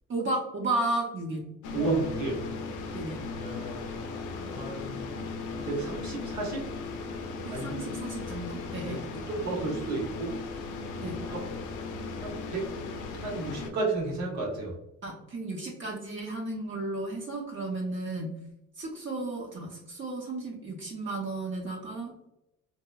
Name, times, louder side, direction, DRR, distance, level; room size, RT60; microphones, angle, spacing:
voice 1, 0.1-1.4 2.9-3.2 7.4-9.0 11.0-11.1 15.0-18.3 18.8-22.1, right 2 dB, 40° right, -2 dB, 0.7 m, -33 dB
sound 1, 1.6-13.7, left 4 dB, 80° left, 0.5 m, -37 dB
voice 2, 1.7-2.4 2.8-3.9 4.5-5.0 5.5-6.6 7.5-7.7 8.8-10.3 11.3-11.4 12.2-12.7 13.1-14.7, right 3 dB, 70° right, -3 dB, 1.1 m, -32 dB
2.9 x 2.0 x 2.2 m, 0.87 s
cardioid pair, 90°, 30 cm